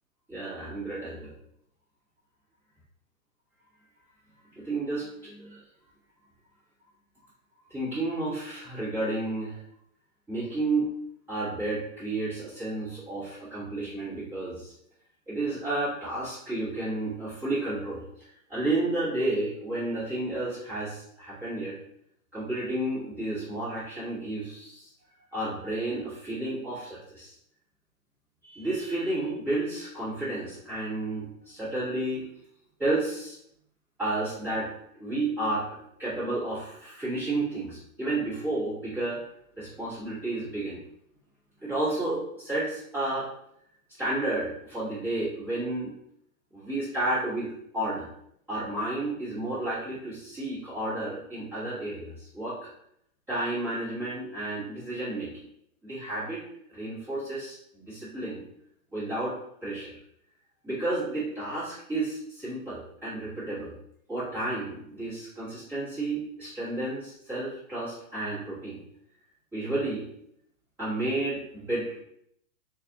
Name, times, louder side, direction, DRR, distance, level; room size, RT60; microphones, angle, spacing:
voice 1, 0.3-1.3 4.5-5.6 7.7-9.6 10.3-10.9 11.3-14.7 15.3-18.0 18.5-21.7 22.3-24.9 25.3-27.3 28.4-32.3 32.8-33.4 34.0-34.7 35.0-35.7 36.0-39.2 39.6-40.8 41.6-43.3 44.0-45.9 46.5-48.1 48.5-52.7 53.3-55.3 55.8-56.4 56.7-58.4 58.9-59.4 59.6-59.9 60.6-63.7 64.1-68.8 69.5-70.1 70.8-72.0, right 2 dB, 5° right, -14 dB, 1.2 m, -31 dB
4.0 x 2.4 x 3.9 m, 0.72 s
hypercardioid pair, 175°, 42 cm